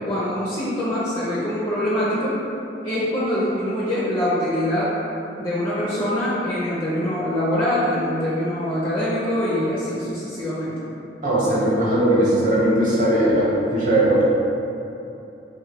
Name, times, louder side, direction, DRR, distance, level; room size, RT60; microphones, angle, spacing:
voice 1, 0.0-2.4 2.8-4.9 5.4-10.8, left 1 dB, 30° left, -9 dB, 0.5 m, -24 dB
voice 2, 11.2-14.2, right 1 dB, 50° right, -7 dB, 0.8 m, -19 dB
3.1 x 2.3 x 3.5 m, 2.8 s
head